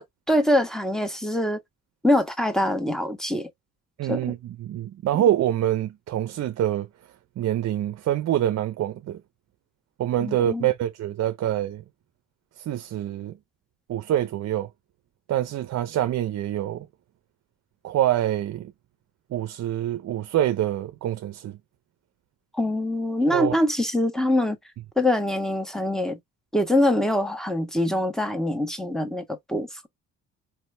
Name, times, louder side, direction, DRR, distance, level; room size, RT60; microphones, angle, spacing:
voice 1, 0.0-1.6 2.0-3.5 4.1-4.2 10.2-10.7 22.5-24.6 25.0-26.2 26.5-29.7, left 1 dB, ahead, 1.3 m, -24 dB
voice 2, 4.0-6.9 7.4-9.2 10.0-11.8 12.6-13.4 13.9-14.7 15.3-16.9 17.8-18.7 19.3-21.6 23.3-23.5, right 12 dB, 60° right, 0.6 m, -25 dB
4.7 x 2.9 x 3.2 m
cardioid pair, 90°, 30 cm